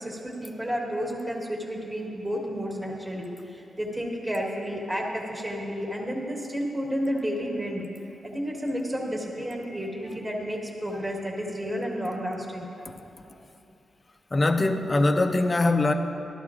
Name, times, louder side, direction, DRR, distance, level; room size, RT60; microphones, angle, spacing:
voice 1, 0.0-7.8 8.2-13.0, equal, 15° right, -1 dB, 1.3 m, -31 dB
voice 2, 14.3-15.9, left 2 dB, 25° left, 6 dB, 0.5 m, -22 dB
13.5 x 11.5 x 2.4 m, 2.7 s
cardioid pair, 95°, 0 cm